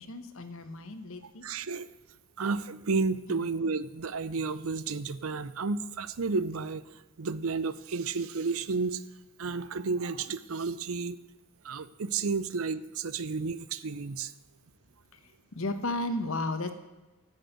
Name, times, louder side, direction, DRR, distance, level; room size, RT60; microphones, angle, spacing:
voice 1, 0.0-1.5 3.3-3.4 15.5-16.7, left 2 dB, 65° left, 9 dB, 1.1 m, -34 dB
voice 2, 1.4-1.9 2.4-6.8 7.2-9.0 9.4-11.2 11.6-14.3, right 4 dB, 70° right, 16 dB, 0.6 m, -32 dB
11.0 x 6.5 x 9.2 m, 1.1 s
head